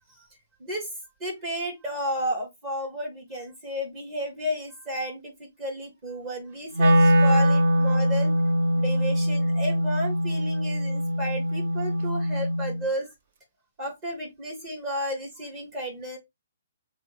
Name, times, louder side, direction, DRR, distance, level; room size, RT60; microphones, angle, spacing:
voice 1, 1.2-8.3 8.7-13.1 13.8-16.2, equal, 35° right, -2 dB, 1.5 m, -32 dB
Wind instrument woodwind instrument, 6.8-12.8, equal, 50° right, 0.7 m, -22 dB
5.9 x 2.0 x 3.2 m, 0.18 s
figure-of-eight pair, 130°, 0 cm